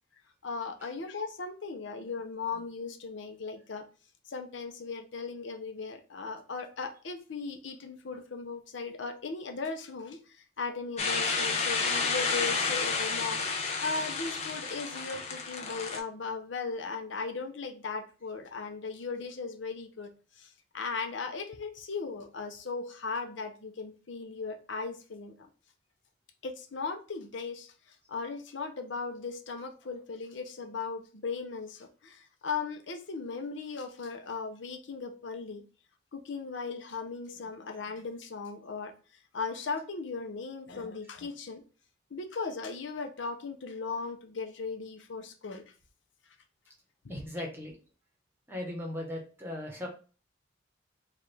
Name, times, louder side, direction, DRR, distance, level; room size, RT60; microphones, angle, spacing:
voice 1, 0.4-3.9 4.3-20.1 20.4-25.5 26.4-35.6 36.1-38.9 39.3-41.6 42.1-45.6 47.0-47.1, left 4 dB, 70° left, 0.6 m, -37 dB
sound 1, 11.0-16.0, left 4 dB, 35° left, 0.7 m, -31 dB
voice 2, 47.1-47.8 48.5-49.9, left 1 dB, 10° right, 1.0 m, -38 dB
4.8 x 2.4 x 3.3 m
head